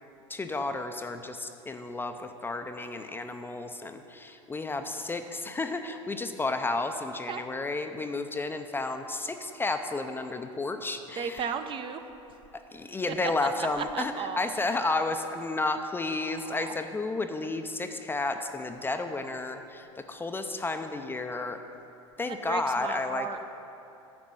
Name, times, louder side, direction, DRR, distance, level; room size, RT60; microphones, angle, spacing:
voice 1, 0.3-2.1 2.4-11.5 12.7-21.6 22.2-23.3, left 3 dB, 15° left, 7 dB, 0.5 m, -32 dB
voice 2, 11.2-12.0 13.2-13.3 13.6-14.5 16.4-16.7 22.3-23.4, right 7 dB, 30° right, 9 dB, 0.6 m, -35 dB
10.5 x 5.2 x 7.6 m, 2.8 s
hypercardioid pair, 90°, 16 cm